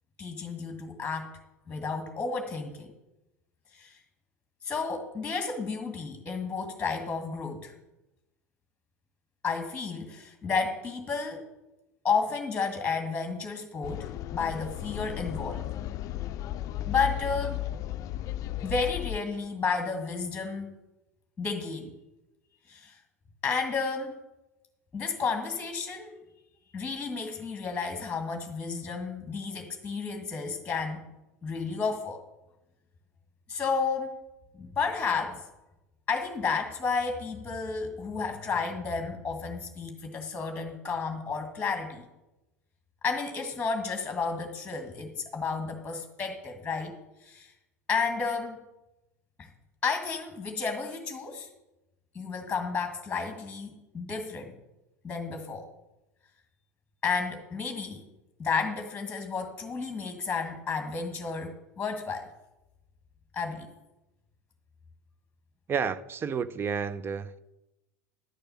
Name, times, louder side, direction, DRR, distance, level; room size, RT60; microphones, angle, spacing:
voice 1, 0.2-1.3 1.7-2.9 3.7-4.0 4.6-7.7 9.4-11.5 12.0-15.7 16.8-17.6 18.6-20.8 21.4-21.9 22.7-23.0 23.4-24.2 24.9-26.2 26.7-31.1 31.4-32.2 33.5-34.2 34.5-35.4 36.1-42.1 43.0-47.5 47.9-48.6 49.4-49.5 49.8-51.5 52.1-54.5 55.0-55.6 57.0-58.0 58.4-62.3 63.3-63.7, left 5 dB, 15° left, 1.8 m, -32 dB
sound 1, 13.8-19.2, left 14 dB, 40° left, 0.5 m, -35 dB
voice 2, 65.7-67.4, right 6 dB, 25° right, 0.7 m, -31 dB
11.5 x 6.8 x 7.1 m
figure-of-eight pair, 80°, 9 cm